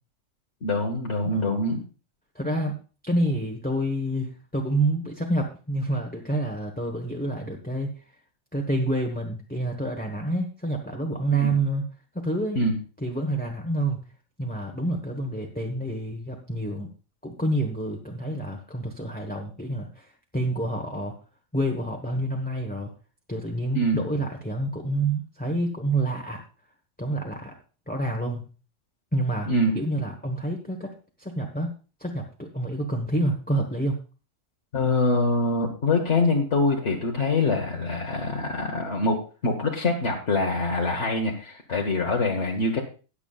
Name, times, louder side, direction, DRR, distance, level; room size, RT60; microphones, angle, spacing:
voice 1, 0.6-1.8 11.4-11.5 12.6-12.7 23.7-24.0 29.5-29.7 34.7-42.8, left 2 dB, 60° left, 0 dB, 1.5 m, -24 dB
voice 2, 1.2-1.7 2.3-7.9 8.5-11.9 12.1-12.6 13.0-14.0 14.4-16.9 17.2-20.1 20.3-21.1 21.5-22.9 23.3-26.4 27.0-27.5 27.9-28.5 29.1-30.9 31.2-31.7 32.0-34.0, right 1 dB, 5° left, 1 dB, 1.0 m, -28 dB
20.0 x 7.1 x 2.4 m, 0.34 s
omnidirectional pair, 1.4 m